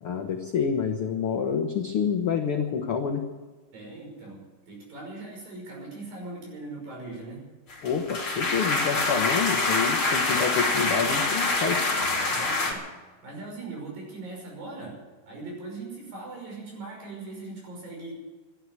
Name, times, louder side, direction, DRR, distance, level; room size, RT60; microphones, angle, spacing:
voice 1, 0.0-3.2 7.8-11.9, left 7 dB, 75° left, 4 dB, 1.2 m, -28 dB
voice 2, 3.7-7.4 12.3-12.9 13.2-15.0 15.3-18.1, right 3 dB, 80° right, -1 dB, 7.5 m, -40 dB
sound 1, 7.7-12.7, left 3 dB, 40° left, 3.4 m, -25 dB
13.0 x 11.5 x 9.6 m, 1.3 s
omnidirectional pair, 4.0 m